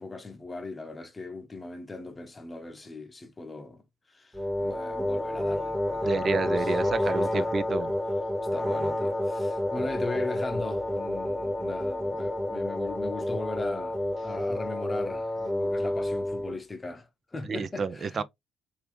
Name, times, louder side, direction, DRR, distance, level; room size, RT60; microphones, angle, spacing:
voice 1, 0.0-3.8 4.1-6.8 7.2-7.5 8.5-18.2, left 3 dB, 20° left, 0.8 m, -39 dB
sound 1, 4.3-16.6, left 1 dB, 5° right, 1.0 m, -29 dB
voice 2, 6.0-7.9 17.5-18.2, right 5 dB, 40° right, 0.4 m, -30 dB
3.7 x 2.8 x 3.2 m
figure-of-eight pair, 50°, 0 cm